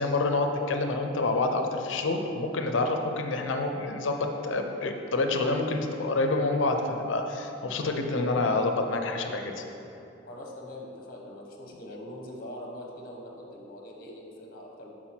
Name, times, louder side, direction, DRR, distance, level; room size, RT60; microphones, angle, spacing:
voice 1, 0.0-9.6, left 2 dB, 75° left, 5 dB, 0.5 m, -27 dB
voice 2, 10.3-14.9, left 1 dB, 50° left, -1 dB, 0.8 m, -42 dB
5.9 x 4.5 x 4.3 m, 3.0 s
head